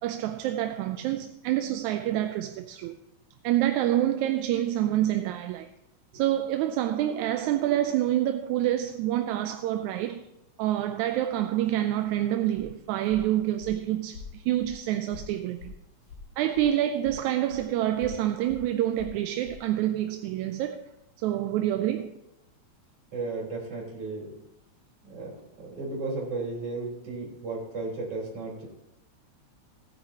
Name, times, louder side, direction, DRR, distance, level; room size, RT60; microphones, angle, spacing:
voice 1, 0.0-3.0 3.4-5.7 6.1-10.2 10.6-15.7 16.4-20.9 21.2-22.1, right 12 dB, 85° right, 1.9 m, -27 dB
Walk footsteps, 12.0-16.7 17.0-19.6, left 5 dB, 80° left, 4.5 m, -46 dB
voice 2, 23.1-24.3 25.0-28.7, right 3 dB, 50° right, 4.8 m, -34 dB
17.5 x 9.8 x 2.9 m
omnidirectional pair, 3.3 m